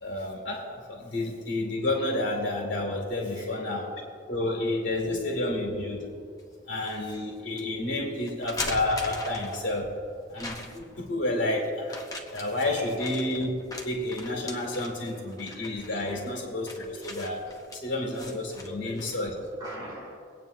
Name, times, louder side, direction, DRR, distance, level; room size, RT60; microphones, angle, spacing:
voice 1, 0.0-4.0 4.3-6.1 6.7-9.9 10.3-12.0 12.3-19.3, left 2 dB, 70° left, 0 dB, 2.5 m, -30 dB
sound 1, 6.4-7.0 7.6-7.7 8.3-9.8 10.4-11.0 11.8-19.3, left 2 dB, 20° left, 0.9 m, -40 dB
voice 2, 18.6-20.2, right 1 dB, 20° right, -4 dB, 3.1 m, -42 dB
23.0 x 9.1 x 2.7 m, 2.2 s
head